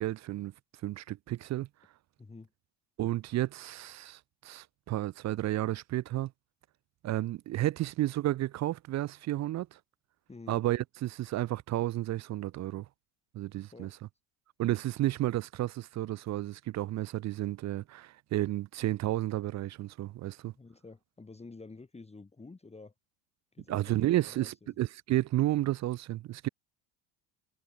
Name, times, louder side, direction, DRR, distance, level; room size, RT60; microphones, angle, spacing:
voice 1, 0.0-0.5 0.8-1.7 3.0-6.3 7.0-9.8 10.5-12.9 13.3-13.9 14.6-20.5 23.7-26.5, right 15 dB, 40° right, 0.4 m, -32 dB
voice 2, 2.2-2.5 10.3-10.6 13.7-14.0 20.5-22.9 23.5-24.7, left 3 dB, 15° left, 1.7 m, -50 dB
supercardioid pair, 95°, 46 cm